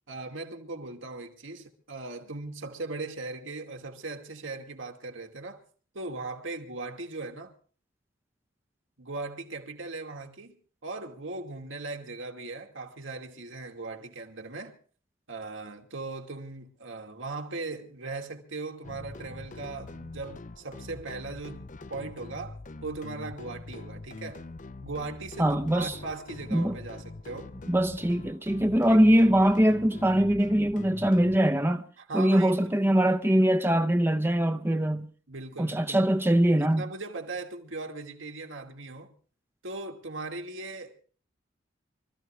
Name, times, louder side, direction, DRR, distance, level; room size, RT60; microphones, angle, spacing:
voice 1, 0.1-5.6 5.9-7.5 9.0-10.6 10.8-14.8 15.3-24.4 24.8-27.5 28.9-29.0 32.0-32.9 35.3-36.1 36.5-39.1 39.6-40.9, right 3 dB, 75° right, 2.6 m, -39 dB
sound 1, 18.8-31.4, left 2 dB, 40° left, 0.6 m, -43 dB
voice 2, 25.4-26.0 26.5-26.8 27.7-31.8 32.1-35.1 35.6-36.8, right 1 dB, 10° right, 0.7 m, -22 dB
26.0 x 14.0 x 3.2 m
head